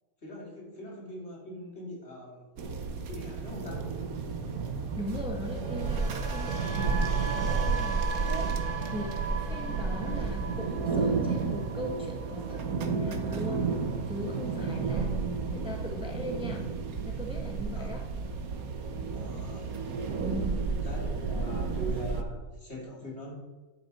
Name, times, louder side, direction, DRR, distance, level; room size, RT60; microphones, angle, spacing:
voice 1, 0.2-2.5 3.1-3.9 15.3-15.5 17.7-17.9 19.1-19.8 20.8-23.3, equal, 50° left, -3 dB, 3.5 m, -42 dB
sound 1, 2.6-22.2, right 4 dB, 85° right, 1.5 m, -32 dB
voice 2, 4.9-7.0 7.3-13.7 14.1-16.7 17.0-18.1 20.2-20.7 23.0-23.1, equal, 5° right, 1 dB, 1.2 m, -39 dB
sound 2, 5.4-13.5 13.7-14.1, right 5 dB, 40° right, 1.3 m, -38 dB
11.0 x 9.4 x 4.2 m, 1.2 s
omnidirectional pair, 1.5 m